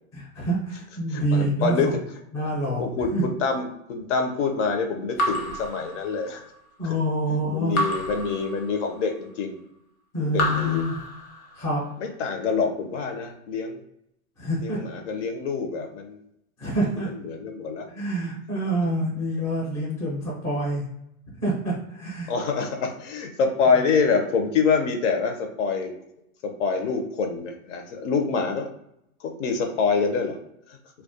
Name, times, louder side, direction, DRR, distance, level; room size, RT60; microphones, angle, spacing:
voice 1, 0.1-1.9 2.3-3.2 6.8-7.8 10.1-11.0 11.5-11.8 14.4-14.8 16.6-17.1 17.9-20.8 21.4-22.3, right 1 dB, 10° left, -5 dB, 0.4 m, -26 dB
voice 2, 1.1-2.0 2.6-6.4 6.8-7.0 7.5-9.5 10.2-10.8 12.0-13.8 14.6-16.2 17.0-17.9 22.3-25.9 26.4-28.7 29.2-30.4 30.7-30.8, left 5 dB, 60° left, 5 dB, 0.5 m, -26 dB
Raindrop / Drip, 5.2-6.6 7.7-9.1 10.3-11.7, left 1 dB, 75° left, 0.8 m, -30 dB
2.3 x 2.1 x 2.6 m, 0.77 s
hypercardioid pair, 140°, 42 cm